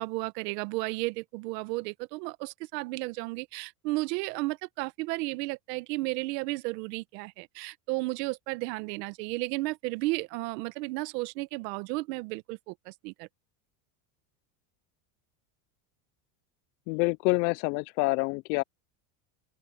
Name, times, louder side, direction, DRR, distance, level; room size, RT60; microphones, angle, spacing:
voice 1, 0.0-13.3, right 22 dB, 75° right, 1.1 m, -33 dB
voice 2, 16.9-18.6, left 26 dB, 80° left, 0.6 m, -27 dB
open air
cardioid pair, 160°, 50 cm